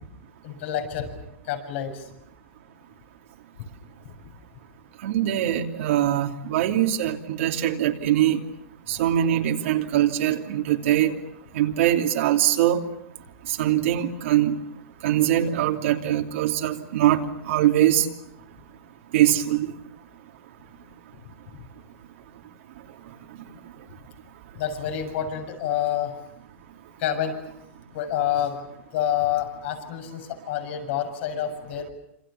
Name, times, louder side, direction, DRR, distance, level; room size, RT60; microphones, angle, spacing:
voice 1, 0.4-1.1 1.5-2.1 24.5-26.1 27.0-27.4 27.9-28.6 28.9-31.9, left 10 dB, 60° left, 6 dB, 7.3 m, -28 dB
voice 2, 5.0-8.4 8.9-11.2 11.5-12.9 13.5-14.6 15.0-18.1 19.1-19.7 23.3-23.4, right 12 dB, 70° right, 2 dB, 2.8 m, -22 dB
27.5 x 27.5 x 7.1 m, 0.78 s
supercardioid pair, 155°, 7 cm